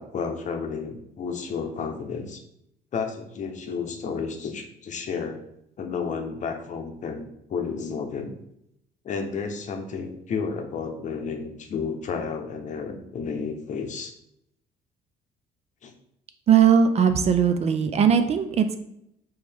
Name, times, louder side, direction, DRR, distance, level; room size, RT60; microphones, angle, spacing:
voice 1, 0.0-2.4 2.9-5.4 5.8-8.3 9.0-14.1 15.8-15.9, left 5 dB, 45° left, 5 dB, 0.7 m, -32 dB
voice 2, 16.5-18.8, right 7 dB, 40° right, 8 dB, 0.4 m, -19 dB
4.6 x 3.1 x 3.4 m, 0.77 s
cardioid pair, 110°, 17 cm